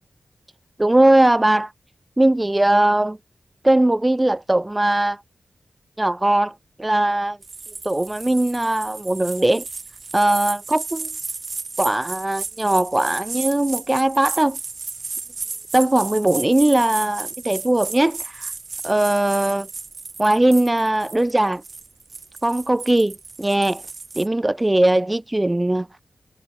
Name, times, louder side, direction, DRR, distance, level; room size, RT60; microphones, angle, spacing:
voice 1, 0.8-1.7 2.2-3.2 3.6-5.2 6.0-6.5 6.8-7.4 7.8-9.6 10.1-11.1 11.8-14.6 15.7-18.5 18.8-19.7 20.2-21.6 22.4-23.8 24.2-25.9, right 1 dB, 20° right, 4.0 m, -19 dB
sound 1, 7.4-24.3, right 4 dB, 55° right, 4.1 m, -34 dB
cardioid pair, 60°, 0 cm